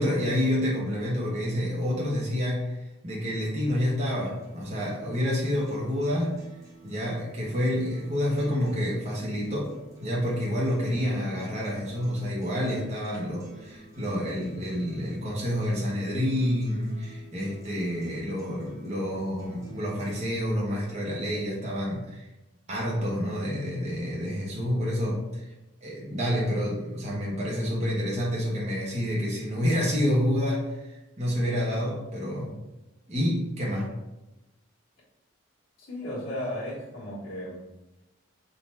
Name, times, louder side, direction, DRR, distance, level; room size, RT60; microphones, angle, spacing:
voice 1, 0.0-6.4 6.8-9.7 10.0-22.3 22.7-25.5 25.8-32.5 33.1-33.9, equal, 35° right, -5 dB, 1.1 m, -28 dB
sound 1, 4.2-20.2, right 1 dB, 15° right, 1.0 m, -50 dB
voice 2, 10.8-11.3 35.8-37.6, left 1 dB, 70° left, -7 dB, 1.6 m, -35 dB
3.9 x 2.9 x 4.5 m, 0.98 s
head